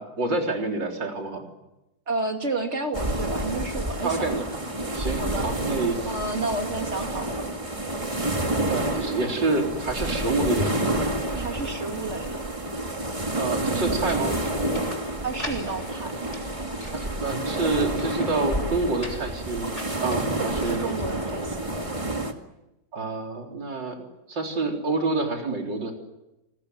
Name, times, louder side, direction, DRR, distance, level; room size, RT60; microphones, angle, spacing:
voice 1, 0.0-1.4 4.0-4.4 4.9-6.0 8.7-11.0 13.4-14.3 16.9-19.8 20.0-20.8 22.9-24.0 24.3-25.9, right 3 dB, 60° right, 2 dB, 4.5 m, -27 dB
voice 2, 2.1-4.5 5.2-5.5 6.1-7.4 11.3-12.4 15.2-16.1 20.4-21.7, right 3 dB, 30° right, 4 dB, 2.7 m, -31 dB
sound 1, 2.9-22.3, right 1 dB, 15° right, 1.9 m, -29 dB
sound 2, 14.1-21.7, left 1 dB, 15° left, 3.6 m, -43 dB
28.0 x 20.5 x 8.0 m, 0.95 s
omnidirectional pair, 2.3 m